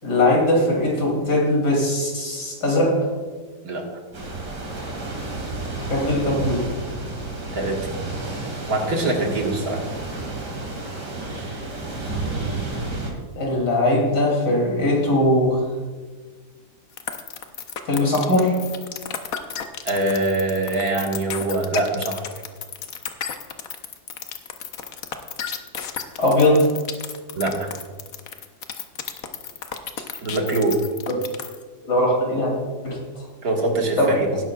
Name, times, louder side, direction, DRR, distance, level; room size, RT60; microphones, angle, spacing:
voice 1, 0.0-2.9 5.9-6.7 13.4-15.6 17.9-18.6 26.2-26.6 31.1-31.2 31.8-32.5 32.8-33.3 34.0-34.1, left 1 dB, 80° left, -2 dB, 3.6 m, -20 dB
sound 1, 4.1-13.1, right 2 dB, 90° right, 3.0 m, -31 dB
voice 2, 8.7-9.8 19.8-22.2 27.4-27.7 30.2-30.8 33.4-34.3, right 2 dB, 65° right, 0 dB, 2.2 m, -23 dB
sound 2, 17.0-31.6, left 8 dB, 65° left, 1.2 m, -32 dB
18.5 x 11.0 x 2.4 m, 1.4 s
omnidirectional pair, 1.7 m